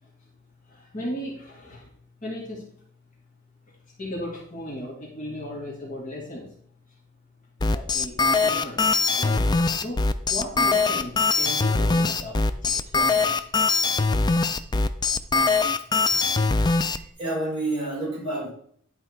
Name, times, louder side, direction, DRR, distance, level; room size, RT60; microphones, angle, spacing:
voice 1, 0.7-1.9 2.2-2.7 4.0-6.5 7.7-8.2 8.4-8.8 9.1-13.5, left 1 dB, 40° left, -4 dB, 2.3 m, -36 dB
sound 1, 7.6-17.0, left 4 dB, 20° left, 0.3 m, -22 dB
voice 2, 16.6-18.5, right 2 dB, 25° right, -4 dB, 4.2 m, -30 dB
11.0 x 4.4 x 4.6 m, 0.62 s
head